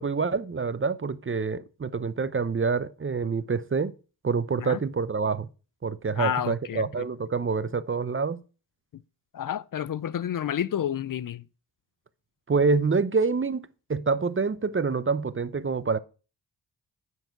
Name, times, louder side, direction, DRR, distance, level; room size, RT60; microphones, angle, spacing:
voice 1, 0.0-3.9 4.2-5.5 5.8-8.4 12.5-16.0, right 4 dB, 30° right, 0.7 m, -26 dB
voice 2, 6.2-6.8 8.9-9.0 9.3-11.4, left 9 dB, 50° left, 0.5 m, -30 dB
10.5 x 4.7 x 5.9 m
supercardioid pair, 45°, 43 cm